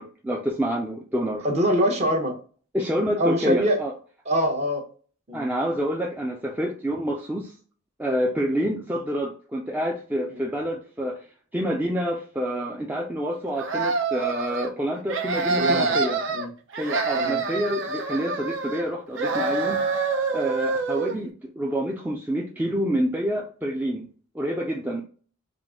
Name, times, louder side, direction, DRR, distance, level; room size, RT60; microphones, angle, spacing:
voice 1, 0.0-1.4 2.7-3.9 5.3-7.5 8.0-11.3 11.5-16.2 16.8-19.8 20.3-24.1 24.3-25.0, equal, 10° right, -1 dB, 0.4 m, -27 dB
voice 2, 1.4-2.3 3.2-3.8 4.3-4.9 5.3-5.5 10.3-10.4 15.6-16.0 16.3-16.5 17.1-17.4, equal, 35° right, 2 dB, 0.9 m, -24 dB
sound 1, 13.6-14.7 15.1-16.5 16.7-18.9 19.2-21.2, right 4 dB, 65° right, 0.7 m, -26 dB
3.7 x 2.5 x 3.6 m, 0.40 s
head